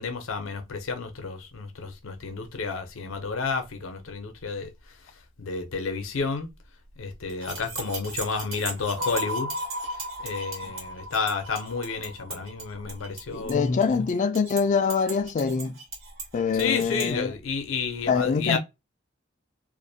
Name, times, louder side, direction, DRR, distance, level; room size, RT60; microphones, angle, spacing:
voice 1, 0.0-4.7 5.4-6.5 7.0-9.5 9.9-13.6 16.5-18.6, left 4 dB, 90° left, 0.6 m, -31 dB
sound 1, 7.3-17.1, right 3 dB, 85° right, 1.3 m, -39 dB
sound 2, 9.0-13.2, equal, 45° right, 0.9 m, -35 dB
voice 2, 13.3-15.7 16.3-17.3 18.1-18.6, left 5 dB, 40° left, 0.3 m, -24 dB
2.4 x 2.1 x 2.6 m
head